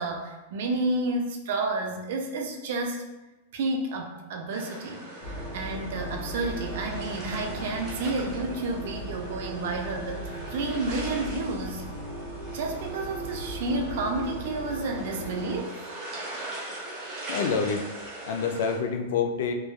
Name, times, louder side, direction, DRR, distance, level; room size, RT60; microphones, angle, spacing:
voice 1, 0.0-3.0 3.5-11.8 12.5-15.7, right 2 dB, 60° right, 3 dB, 0.4 m, -31 dB
sound 1, 4.5-18.8, right 2 dB, 25° right, 0.7 m, -41 dB
sound 2, 5.2-15.6, right 1 dB, 35° left, 0.9 m, -37 dB
voice 2, 17.3-17.8 18.3-19.5, left 6 dB, 60° left, 5 dB, 0.3 m, -27 dB
3.1 x 2.2 x 2.3 m, 1.1 s
supercardioid pair, 160°, 0 cm